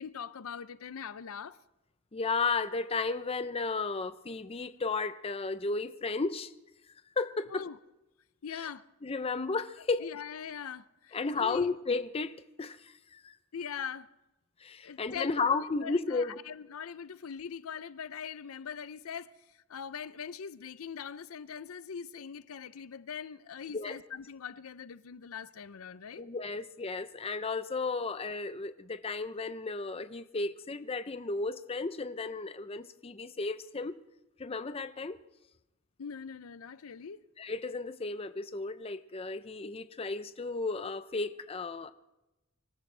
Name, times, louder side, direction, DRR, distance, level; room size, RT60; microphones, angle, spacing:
voice 1, 0.0-1.6 7.5-7.8 8.4-8.8 10.0-11.7 13.5-14.1 14.8-26.3 36.0-37.2, left 7 dB, 85° left, 0.5 m, -42 dB
voice 2, 2.1-6.5 7.2-7.6 8.5-8.7 9.0-10.1 11.1-13.3 14.6-16.3 23.7-24.0 26.2-34.0 34.4-35.2 37.4-41.9, left 4 dB, 25° left, 0.6 m, -33 dB
25.0 x 14.5 x 3.3 m
head